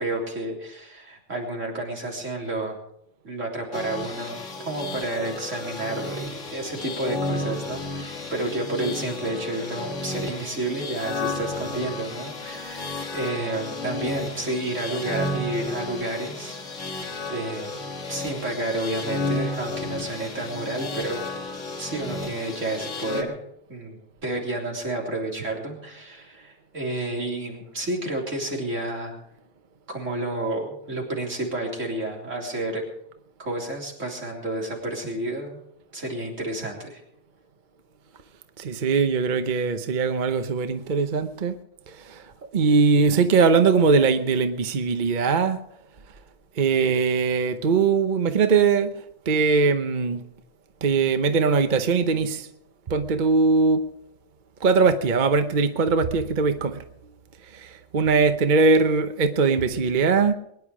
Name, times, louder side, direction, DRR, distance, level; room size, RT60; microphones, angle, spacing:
voice 1, 0.0-2.8 3.2-17.7 18.1-21.3 21.8-23.4 23.7-29.2 29.9-32.8 33.4-35.6 35.9-37.0, right 2 dB, 80° right, -1 dB, 3.9 m, -30 dB
sound 1, 3.7-23.2, left 2 dB, 80° left, 2.1 m, -33 dB
voice 2, 38.6-41.6 41.9-45.6 46.5-50.2 50.8-52.5 52.9-53.9 54.6-56.8 57.4-60.3, right 4 dB, 45° right, 8 dB, 1.0 m, -21 dB
22.5 x 10.5 x 4.9 m, 0.75 s
omnidirectional pair, 1.3 m